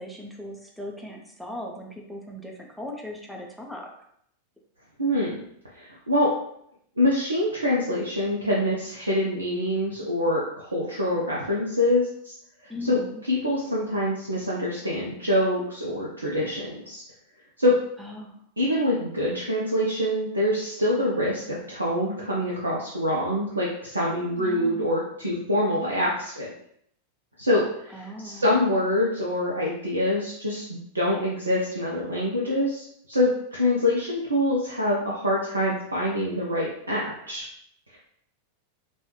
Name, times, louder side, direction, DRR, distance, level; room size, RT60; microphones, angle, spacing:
voice 1, 0.0-3.9 12.7-13.2 18.0-18.4 24.4-24.9 27.9-28.6, left 1 dB, ahead, 0 dB, 0.5 m, -38 dB
voice 2, 5.0-5.4 5.7-6.3 7.0-12.3 12.8-13.0 13.3-17.0 17.6-17.8 18.6-26.5 27.4-37.4, left 1 dB, 80° right, -4 dB, 0.5 m, -25 dB
3.0 x 2.3 x 3.0 m, 0.71 s
figure-of-eight pair, 90°, 0 cm